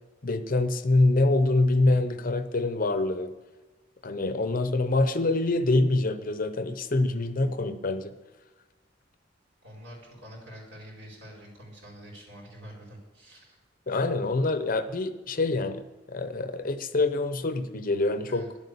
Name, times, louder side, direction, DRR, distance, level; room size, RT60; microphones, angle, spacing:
voice 1, 0.2-3.3 4.0-8.1 13.9-18.4, left 2 dB, 45° left, 10 dB, 0.7 m, -25 dB
voice 2, 9.6-13.6 18.3-18.5, equal, 70° right, -2 dB, 4.5 m, -46 dB
11.0 x 8.1 x 8.4 m, 1.2 s
head